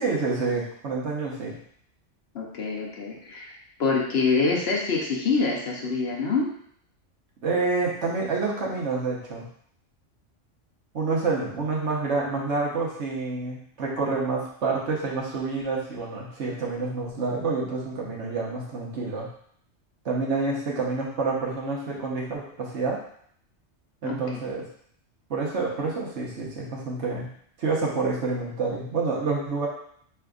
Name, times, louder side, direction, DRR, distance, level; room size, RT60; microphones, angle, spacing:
voice 1, 0.0-1.6 7.4-9.5 10.9-19.3 20.0-23.0 24.0-24.7 25.3-27.3 27.6-29.7, right 4 dB, 65° right, -3 dB, 1.2 m, -28 dB
voice 2, 2.3-3.5 3.8-6.5 24.0-24.2, left 4 dB, 60° left, -1 dB, 0.9 m, -25 dB
4.9 x 3.4 x 2.4 m, 0.64 s
omnidirectional pair, 1.3 m